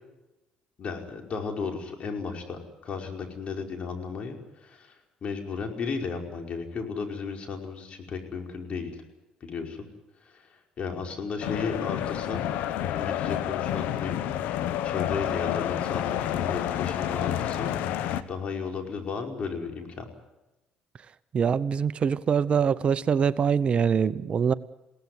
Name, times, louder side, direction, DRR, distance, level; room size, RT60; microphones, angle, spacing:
voice 1, 0.8-9.0 9.4-9.9 10.2-12.5 12.9-14.2 14.8-17.7 18.3-20.1, left 5 dB, 50° left, 5.2 m, -34 dB
sound 1, 11.4-18.2, left 11 dB, 80° left, 1.2 m, -29 dB
voice 2, 21.3-24.5, right 7 dB, 45° right, 0.9 m, -24 dB
21.5 x 17.5 x 9.6 m
supercardioid pair, 75°, 3 cm